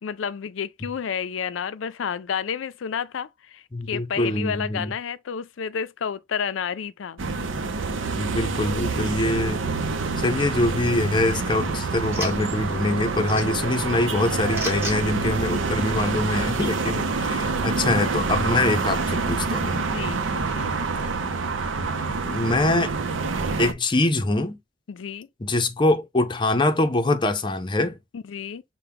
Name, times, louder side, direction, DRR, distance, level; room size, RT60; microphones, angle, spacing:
voice 1, 0.0-7.2 19.7-20.7 24.9-25.3 28.1-28.6, left 7 dB, 85° left, 0.4 m, -31 dB
voice 2, 3.7-4.9 8.2-9.7 10.2-19.8 22.0-22.9 23.6-24.6 25.4-28.0, left 2 dB, 25° left, 0.6 m, -24 dB
sound 1, 7.2-23.7, right 4 dB, 80° right, 0.6 m, -27 dB
sound 2, 11.0-16.4, right 1 dB, 15° right, 1.2 m, -39 dB
5.7 x 2.2 x 3.4 m
head